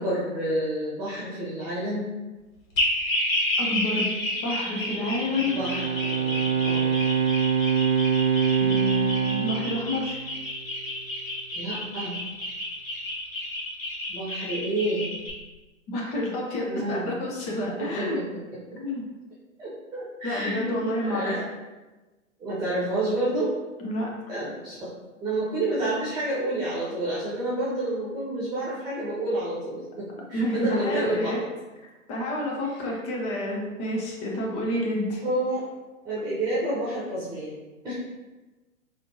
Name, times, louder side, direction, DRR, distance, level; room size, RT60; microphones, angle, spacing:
voice 1, 0.0-2.1 5.5-6.9 11.5-12.1 14.1-15.0 16.7-17.0 17.6-18.1 18.7-18.8 19.6-20.7 21.0-21.4 22.4-23.5 24.3-24.9 25.2-31.3 32.6-32.9 35.2-35.7 36.0-37.5 37.8-37.9, right 1 dB, 10° right, -9 dB, 1.1 m, -29 dB
sound 1, 2.8-15.3, left 1 dB, 70° left, 1.3 m, -30 dB
voice 2, 3.6-4.1 4.4-5.6 8.4-10.2 15.9-18.2 18.8-19.0 20.2-21.4 23.8-24.1 30.3-31.4 32.1-35.2, left 1 dB, 15° left, -2 dB, 0.5 m, -29 dB
Bowed string instrument, 5.2-10.7, right 7 dB, 40° right, 0.4 m, -25 dB
4.2 x 2.5 x 2.9 m, 1.2 s
figure-of-eight pair, 110°, 41 cm